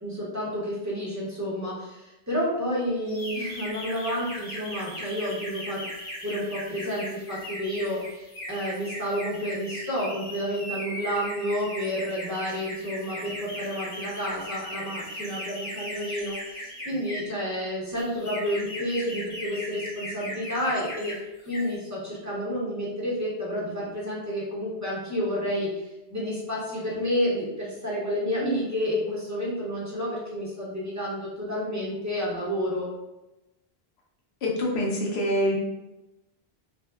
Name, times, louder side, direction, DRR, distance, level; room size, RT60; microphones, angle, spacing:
voice 1, 0.0-5.8 6.2-21.2 21.5-32.9, equal, 20° right, -7 dB, 0.8 m, -30 dB
sound 1, 3.1-17.4 18.0-21.2 21.4-21.7, equal, 60° left, 1.0 m, -38 dB
voice 2, 34.4-35.6, equal, 90° left, -3 dB, 1.0 m, -25 dB
3.3 x 2.0 x 2.2 m, 0.97 s
omnidirectional pair, 1.1 m